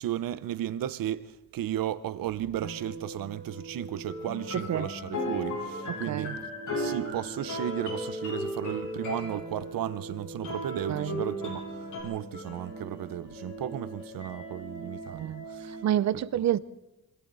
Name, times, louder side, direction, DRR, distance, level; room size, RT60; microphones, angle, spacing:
voice 1, 0.0-6.4 6.7-15.8 16.1-16.2, right 12 dB, 90° right, 1.0 m, -35 dB
sound 1, 2.6-15.8, right 1 dB, 20° left, 6.3 m, -41 dB
sound 2, 4.4-9.4 10.4-12.0, left 1 dB, 65° left, 7.0 m, -36 dB
voice 2, 10.9-11.2 15.1-15.4 15.8-16.6, right 11 dB, 55° right, 0.6 m, -28 dB
26.5 x 25.5 x 4.1 m
wide cardioid pair, 175°, 33 cm